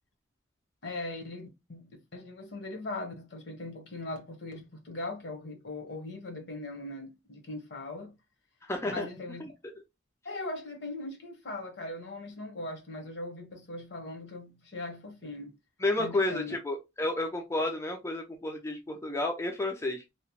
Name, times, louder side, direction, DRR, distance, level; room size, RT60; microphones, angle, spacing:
voice 1, 0.8-8.1 8.9-9.4 10.2-15.5 16.0-16.6, left 2 dB, 60° left, 0.8 m, -40 dB
voice 2, 8.6-9.1 9.4-9.5 15.8-20.1, left 2 dB, 15° left, 0.3 m, -31 dB
2.8 x 2.1 x 2.8 m
head